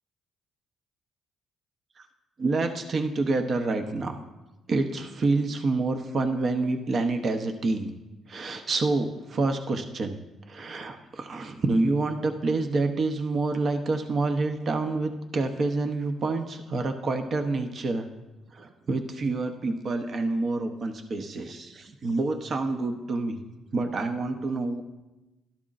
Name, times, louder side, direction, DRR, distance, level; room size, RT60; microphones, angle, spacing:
voice 1, 2.4-4.2 4.7-7.9 8.3-10.2 10.5-18.1 18.5-23.4 23.7-24.8, right 3 dB, 50° right, 6 dB, 0.9 m, -27 dB
12.0 x 12.0 x 2.6 m, 1.0 s
cardioid pair, 80°, 0 cm